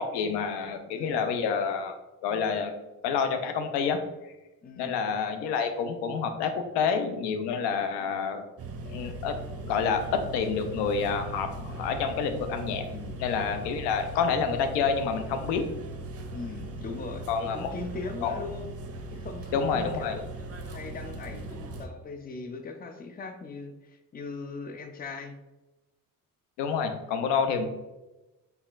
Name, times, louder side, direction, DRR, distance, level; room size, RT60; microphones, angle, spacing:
voice 1, 0.0-2.0 2.2-2.7 3.0-4.0 4.8-8.4 8.8-9.4 9.6-12.9 13.2-15.6 17.3-17.7 18.2-18.3 19.5-20.2 26.6-27.7, left 6 dB, 80° left, 7 dB, 0.6 m, -28 dB
voice 2, 0.9-1.2 4.6-5.0 12.9-13.3 16.3-18.7 19.1-20.2 20.6-25.4, left 4 dB, 20° left, 6 dB, 0.5 m, -39 dB
sound 1, 8.6-21.9, right 2 dB, 35° right, 0.7 m, -39 dB
4.4 x 3.4 x 2.4 m, 1.1 s
supercardioid pair, 55°, 41 cm